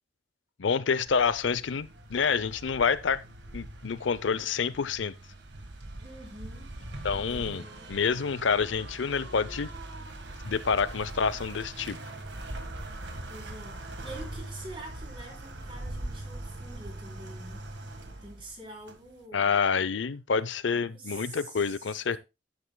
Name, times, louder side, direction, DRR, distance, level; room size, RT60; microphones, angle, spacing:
voice 1, 0.6-3.2 3.5-5.1 7.0-7.6 7.9-9.7 10.4-12.0 19.3-22.2, left 5 dB, 80° left, 0.6 m, -28 dB
sound 1, 1.1-19.2, right 1 dB, 70° right, 1.6 m, -42 dB
voice 2, 6.0-6.7 7.1-8.2 13.3-13.8 14.0-17.7 18.2-19.5 20.7-22.2, right 1 dB, 25° right, 3.3 m, -46 dB
11.5 x 9.2 x 2.2 m
head